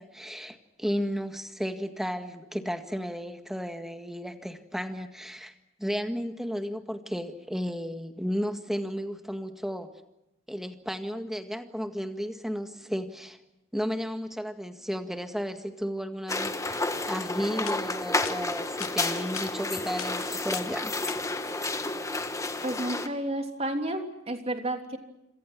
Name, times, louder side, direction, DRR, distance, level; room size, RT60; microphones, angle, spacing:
voice 1, 0.0-5.5 5.8-9.9 10.5-13.4 13.7-20.9, equal, ahead, 7 dB, 1.9 m, -33 dB
sound 1, 16.3-23.1, left 2 dB, 15° left, 1.6 m, -31 dB
sound 2, 17.6-17.8 18.2-18.4 18.8-18.9 19.4-19.5 20.0-20.1 20.5-20.7 21.1-21.2, left 10 dB, 85° left, 1.3 m, -38 dB
voice 2, 22.6-25.0, right 1 dB, 30° right, 5 dB, 3.2 m, -31 dB
27.0 x 27.0 x 6.1 m, 0.90 s
head